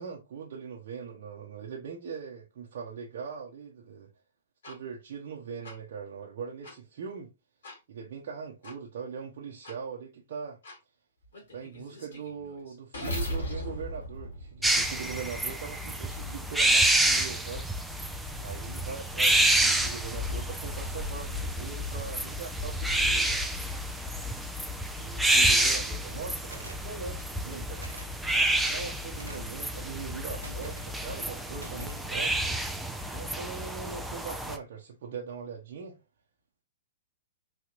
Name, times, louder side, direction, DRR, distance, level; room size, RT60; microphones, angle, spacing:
voice 1, 0.0-4.1 4.6-7.3 7.9-10.6 11.5-17.7 18.4-23.4 25.0-27.9 28.3-32.4 33.1-36.0, right 6 dB, 55° right, 0.8 m, -41 dB
sound 1, 4.6-4.8 5.6-5.7 6.6-6.8 7.6-7.8 8.6-8.8 9.6-9.8 10.6-10.8 11.3-15.2, equal, 70° left, 2.4 m, -38 dB
sound 2, 14.6-34.6, right 1 dB, 5° right, 0.5 m, -29 dB
sound 3, 25.3-25.7 26.5-26.9 27.8-28.1 29.2-29.6 30.4-30.9 31.6-32.1, right 3 dB, 85° right, 0.7 m, -46 dB
4.1 x 2.9 x 2.5 m
figure-of-eight pair, 110°, 0 cm